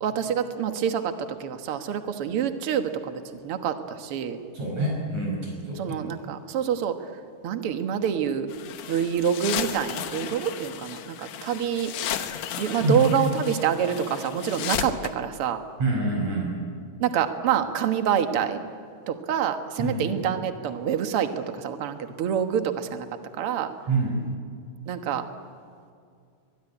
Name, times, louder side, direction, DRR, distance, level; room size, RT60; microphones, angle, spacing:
voice 1, 0.0-4.4 5.7-7.0 7.4-8.5 8.9-11.9 12.6-15.6 17.0-18.6 19.1-23.1 23.4-23.7 24.9-25.2, right 8 dB, 65° right, 7 dB, 1.4 m, -26 dB
voice 2, 4.5-6.0 12.8-13.1 15.8-16.5 19.8-20.1 23.9-24.2, right 2 dB, 45° right, -1 dB, 6.3 m, -26 dB
sound 1, 8.5-15.1, left 10 dB, 65° left, 2.2 m, -34 dB
22.5 x 22.0 x 9.9 m, 2.3 s
omnidirectional pair, 4.5 m